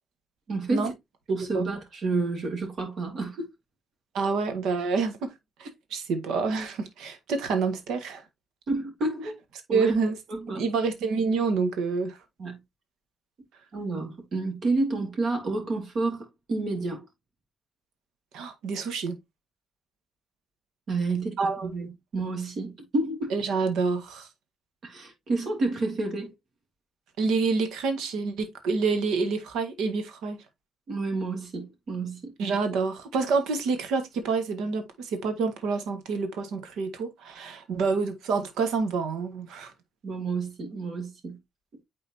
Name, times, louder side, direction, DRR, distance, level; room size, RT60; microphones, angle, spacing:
voice 1, 0.5-0.9 1.3-3.5 8.7-9.4 9.7-9.9 10.3-10.6 12.4-12.6 13.7-17.1 20.9-23.3 24.8-26.3 30.9-32.3 40.0-41.4, right 3 dB, 60° right, 2.9 m, -30 dB
voice 2, 4.1-5.3 5.6-8.2 9.7-10.1 10.5-12.2 18.3-19.2 21.4-21.7 23.3-24.3 27.2-30.4 32.4-39.7, right 4 dB, 85° right, 1.5 m, -27 dB
9.0 x 3.8 x 2.7 m
cardioid pair, 90°, 0 cm